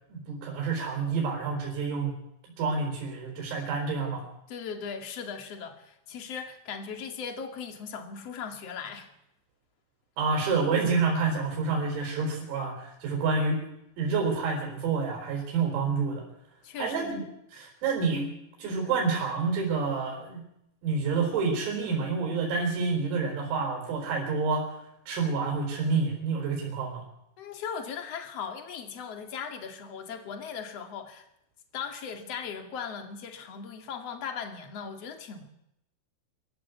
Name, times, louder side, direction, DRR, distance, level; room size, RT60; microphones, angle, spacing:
voice 1, 0.1-2.1 2.6-4.2 10.2-13.6 14.0-16.2 16.8-17.2 17.5-18.3 18.6-20.4 20.8-24.7 25.1-27.0, right 4 dB, 80° right, 0 dB, 7.2 m, -28 dB
voice 2, 4.5-9.1 16.6-17.1 27.4-31.2 31.7-35.5, left 6 dB, 45° left, 5 dB, 2.3 m, -38 dB
26.0 x 15.0 x 8.3 m, 0.81 s
omnidirectional pair, 6.0 m